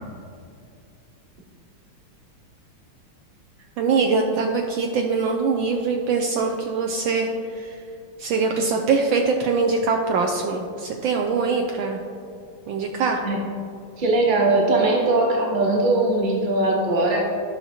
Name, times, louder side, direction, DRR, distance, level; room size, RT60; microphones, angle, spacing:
voice 1, 3.8-7.8 8.2-12.0 12.7-13.2, right 4 dB, 75° right, 2 dB, 1.2 m, -23 dB
voice 2, 14.0-17.2, right 2 dB, 30° right, -1 dB, 1.0 m, -20 dB
13.0 x 5.8 x 2.8 m, 2.4 s
omnidirectional pair, 2.4 m